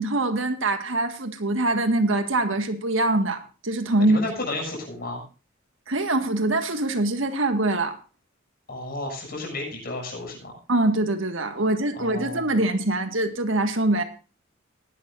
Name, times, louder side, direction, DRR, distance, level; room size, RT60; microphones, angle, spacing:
voice 1, 0.0-4.2 5.9-8.0 10.7-14.0, right 2 dB, 75° right, 7 dB, 1.8 m, -23 dB
voice 2, 4.0-5.2 8.7-10.5 12.0-12.5, left 2 dB, 50° left, 1 dB, 7.0 m, -32 dB
19.5 x 11.5 x 2.6 m, 0.34 s
head